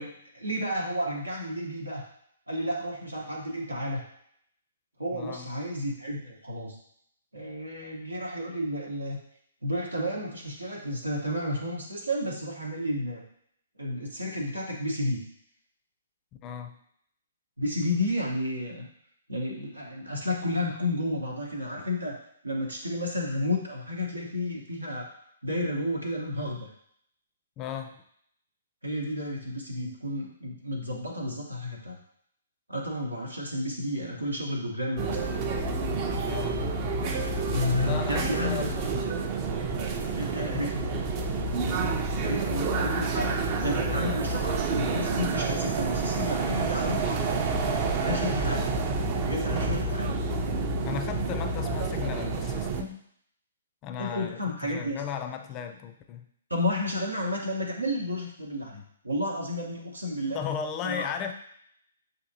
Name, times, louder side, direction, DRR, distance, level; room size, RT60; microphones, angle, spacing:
voice 1, 0.0-2.0 2.5-4.0 5.0-6.8 7.3-9.2 9.6-13.2 13.8-15.3 17.6-18.8 19.3-22.2 22.4-25.1 25.4-26.7 28.8-32.0 32.7-35.2 37.5-38.7 40.0-40.9 42.2-43.3 43.6-47.4 48.0-48.7 49.2-50.1 54.0-55.0 56.5-60.4 60.8-61.2, left 1 dB, 85° right, -2 dB, 0.9 m, -31 dB
voice 2, 5.1-5.5 16.4-16.8 27.6-28.0 36.2-36.7 37.8-39.2 40.4-40.8 50.8-53.0 53.8-56.2 60.3-61.3, left 8 dB, 25° left, 6 dB, 0.4 m, -36 dB
sound 1, 35.0-52.8, right 3 dB, 30° right, 0.4 m, -29 dB
6.6 x 2.6 x 2.7 m, 0.69 s
figure-of-eight pair, 125°, 0 cm